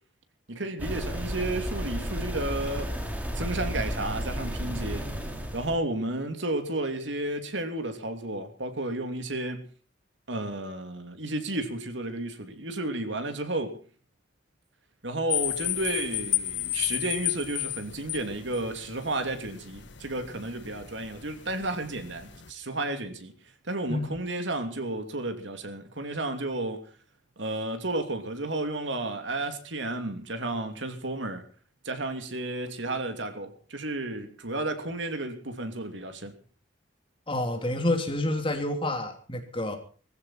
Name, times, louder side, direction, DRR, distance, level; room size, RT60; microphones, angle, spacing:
voice 1, 0.5-2.9 3.3-5.1 5.5-9.6 10.3-13.8 15.0-23.3 23.6-26.9 27.4-31.4 31.8-36.3, right 2 dB, 80° right, 2.8 m, -32 dB
sound 1, 0.8-5.8, equal, 10° right, 2.6 m, -33 dB
sound 2, 15.3-22.5, left 14 dB, 70° left, 1.5 m, -33 dB
voice 2, 37.3-39.8, left 1 dB, 30° left, 3.1 m, -28 dB
20.0 x 15.5 x 4.4 m
head